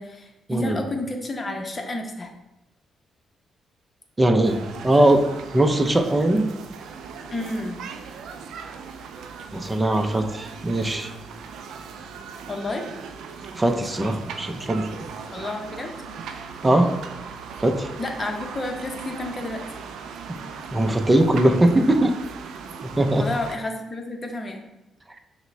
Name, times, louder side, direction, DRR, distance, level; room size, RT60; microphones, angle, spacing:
voice 1, 0.0-2.3 7.3-7.8 12.5-12.8 15.3-15.9 18.0-19.6 23.1-24.6, left 2 dB, 35° left, 3 dB, 0.8 m, -30 dB
voice 2, 4.2-4.5 4.8-5.2 5.5-6.5 9.5-11.1 13.6-14.8 16.6-16.9 17.6-17.9 20.7-22.1 23.0-23.3, right 1 dB, 25° right, 5 dB, 0.6 m, -20 dB
sound 1, 4.4-23.6, right 6 dB, 80° right, 0.3 m, -38 dB
5.8 x 2.2 x 3.3 m, 0.92 s
supercardioid pair, 55°, 0 cm